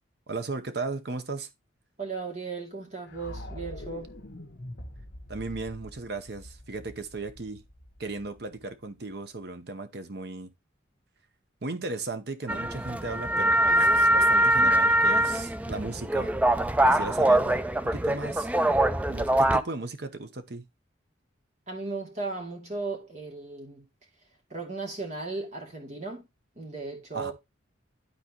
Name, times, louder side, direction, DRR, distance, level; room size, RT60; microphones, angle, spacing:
voice 1, 0.3-1.5 5.3-7.6 8.0-10.5 11.6-16.3 16.9-18.5 19.1-20.6 27.1-27.3, right 3 dB, 55° right, 0.8 m, -36 dB
voice 2, 2.0-4.1 21.7-23.8 24.5-26.3 26.6-27.3, right 3 dB, 35° right, 2.4 m, -36 dB
sound 1, 3.1-9.1, left 1 dB, 60° left, 1.3 m, -44 dB
sound 2, 12.5-19.6, right 1 dB, 5° right, 0.3 m, -23 dB
12.0 x 4.2 x 2.9 m
head